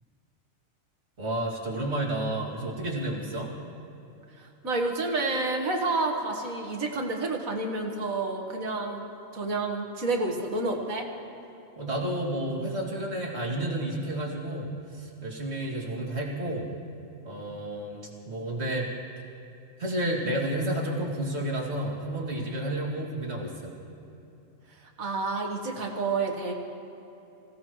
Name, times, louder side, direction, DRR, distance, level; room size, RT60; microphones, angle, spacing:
voice 1, 1.2-3.5 11.8-16.7 17.2-18.9 19.8-23.7, right 1 dB, 50° right, -3 dB, 2.8 m, -31 dB
voice 2, 4.4-11.1 25.0-26.5, right 3 dB, 85° right, 2 dB, 2.1 m, -29 dB
26.0 x 17.0 x 3.2 m, 3.0 s
omnidirectional pair, 1.4 m